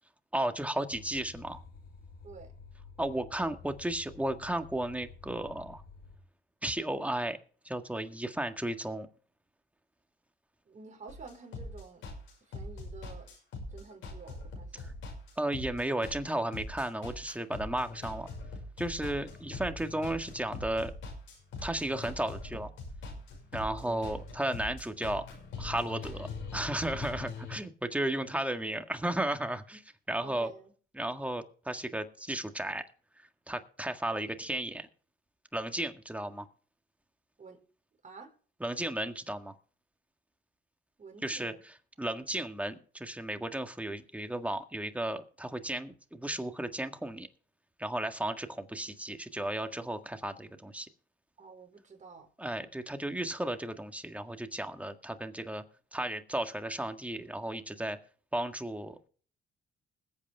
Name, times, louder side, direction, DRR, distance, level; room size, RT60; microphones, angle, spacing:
voice 1, 0.3-1.6 3.0-5.8 6.6-7.4 7.6-9.1 15.4-18.3 18.8-20.9 21.6-22.7 23.5-25.2 25.6-29.8 30.1-30.5 30.9-32.8 33.5-34.9 35.5-36.5 38.6-39.5 41.2-47.3 47.8-50.9 52.4-55.6 55.9-58.0 58.3-59.0, right 1 dB, 5° right, 6 dB, 1.8 m, -34 dB
sound 1, 0.9-6.2, left 4 dB, 55° left, 3.6 m, -51 dB
voice 2, 10.6-12.1 12.4-13.3 13.7-15.0 23.8-24.2 30.2-30.7 37.4-37.6 38.0-38.3 41.0-41.6 51.4-52.3, right 4 dB, 40° right, 3 dB, 5.0 m, -50 dB
sound 2, 11.1-27.6, left 3 dB, 80° left, 6.2 m, -42 dB
21.0 x 8.6 x 3.6 m, 0.43 s
cardioid pair, 90°, 20 cm